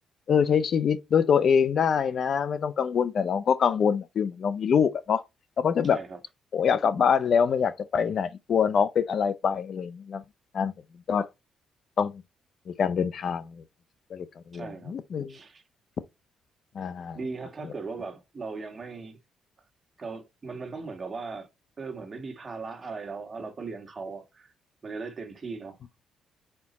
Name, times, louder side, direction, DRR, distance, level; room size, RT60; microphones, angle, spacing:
voice 1, 0.3-5.2 5.6-6.0 6.5-10.2 10.5-10.7 11.1-11.3 12.0-12.1 12.8-13.6 14.1-14.2 14.5-15.3 16.8-17.2, left 7 dB, 55° left, 0.5 m, -24 dB
voice 2, 5.8-6.2 14.5-15.0 15.3-15.6 17.1-19.2 20.0-21.5 21.8-24.5 24.8-25.8, right 4 dB, 35° right, 1.6 m, -38 dB
5.5 x 4.4 x 4.1 m
cardioid pair, 90°, 0 cm